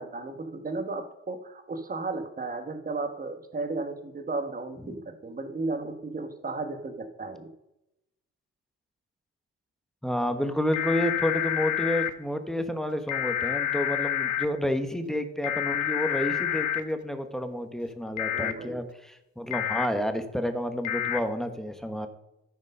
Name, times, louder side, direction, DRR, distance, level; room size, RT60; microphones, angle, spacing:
voice 1, 0.0-7.5 18.3-18.8, right 3 dB, 30° right, 8 dB, 1.5 m, -34 dB
voice 2, 10.0-22.1, left 1 dB, ahead, 7 dB, 1.2 m, -30 dB
sound 1, 10.7-12.1 13.1-14.5 15.4-16.8 18.2-18.5 19.5-19.9 20.8-21.2, left 10 dB, 70° left, 0.9 m, -28 dB
13.5 x 5.2 x 5.4 m, 0.90 s
cardioid pair, 90°, 30 cm